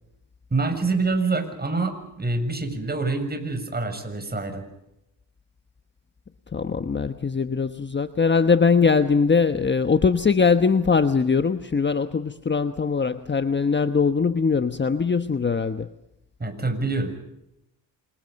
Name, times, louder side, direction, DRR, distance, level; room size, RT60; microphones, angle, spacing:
voice 1, 0.5-4.6 16.4-17.2, right 3 dB, 20° right, 7 dB, 6.9 m, -26 dB
voice 2, 6.5-15.9, left 5 dB, 25° left, 9 dB, 1.2 m, -21 dB
27.5 x 27.5 x 5.4 m, 0.86 s
cardioid pair, 90°, 44 cm